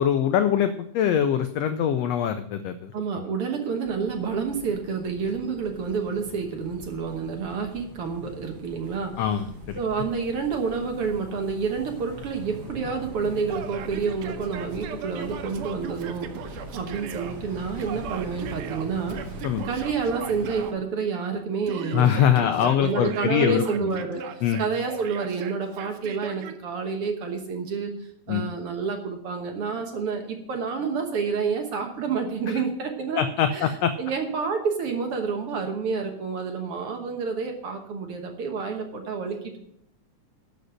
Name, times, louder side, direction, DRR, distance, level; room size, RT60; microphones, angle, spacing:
voice 1, 0.0-2.9 9.2-9.8 19.4-19.7 21.9-23.9 24.4-24.6 28.3-28.4 32.5-32.6 33.2-33.9, left 9 dB, 85° left, 10 dB, 1.4 m, -23 dB
voice 2, 2.9-9.1 9.8-19.2 19.6-27.9 28.3-33.2 33.5-33.7 34.0-39.7, right 5 dB, 60° right, 4 dB, 1.8 m, -29 dB
sound 1, 3.8-20.7, equal, 40° right, 1.3 m, -42 dB
Yell, 13.5-17.3 17.8-20.8 21.7-23.4 23.7-26.6, right 8 dB, 90° right, 2.5 m, -38 dB
12.0 x 5.3 x 7.7 m, 0.73 s
omnidirectional pair, 3.5 m